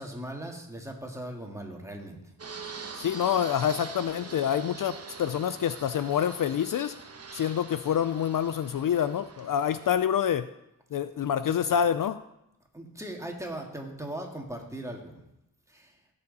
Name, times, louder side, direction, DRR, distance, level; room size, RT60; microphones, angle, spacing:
voice 1, 0.0-2.2 12.7-15.2 15.7-16.0, right 1 dB, 10° right, 1 dB, 2.0 m, -39 dB
Fixed-wing aircraft airplane, 2.4-9.9, right 4 dB, 40° right, 1.2 m, -44 dB
voice 2, 2.9-6.9 7.3-10.5 10.9-12.2, left 9 dB, 60° left, 13 dB, 0.5 m, -27 dB
17.0 x 7.1 x 4.1 m, 0.85 s
wide cardioid pair, 100°, 38 cm